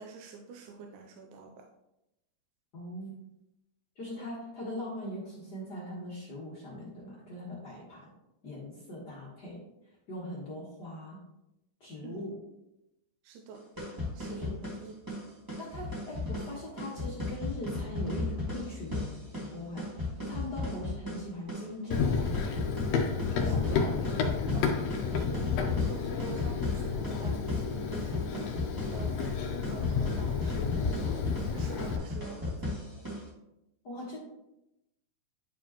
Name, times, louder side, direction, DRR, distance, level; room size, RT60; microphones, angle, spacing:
voice 1, 0.0-1.5 4.2-4.3 12.0-12.2 13.3-13.6 14.2-14.9 23.5-23.6 24.5-24.6 25.1-28.3 28.9-29.2 29.5-32.8, right 4 dB, 80° right, 3 dB, 1.9 m, -46 dB
voice 2, 2.7-3.2 3.9-8.1 8.4-9.6 10.1-11.2 11.8-12.4 14.3-14.7 15.6-22.7 23.3-24.2 33.8-34.2, left 1 dB, 50° left, -6 dB, 1.3 m, -41 dB
sound 1, 13.5-33.3, left 2 dB, 10° right, 0.9 m, -36 dB
Run, 21.9-32.0, left 5 dB, 80° left, 1.4 m, -31 dB
10.0 x 4.4 x 2.9 m, 0.89 s
omnidirectional pair, 3.9 m